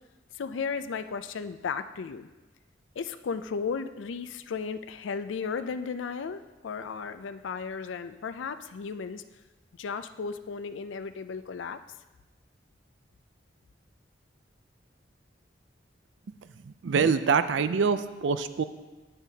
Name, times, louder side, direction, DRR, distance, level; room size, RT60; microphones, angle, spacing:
voice 1, 0.4-2.3 3.0-9.2 9.7-11.8, left 5 dB, 85° left, 11 dB, 0.4 m, -35 dB
voice 2, 16.6-18.6, right 5 dB, 75° right, 12 dB, 0.4 m, -25 dB
9.9 x 8.9 x 2.8 m, 1.2 s
head